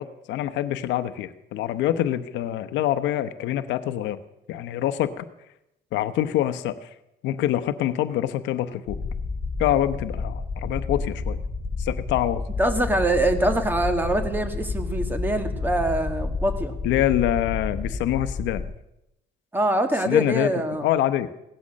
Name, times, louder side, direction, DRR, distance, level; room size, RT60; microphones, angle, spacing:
voice 1, 0.0-4.2 4.5-5.2 5.9-6.9 7.2-9.0 9.6-11.4 11.8-12.4 16.8-18.6 20.1-21.3, left 12 dB, 85° left, 12 dB, 0.9 m, -25 dB
sound 1, 8.9-18.6, left 3 dB, 15° left, 5.6 m, -30 dB
voice 2, 12.6-16.8 19.5-20.9, right 1 dB, 10° right, 6 dB, 1.7 m, -24 dB
17.0 x 12.5 x 6.4 m, 0.88 s
cardioid pair, 135°, 18 cm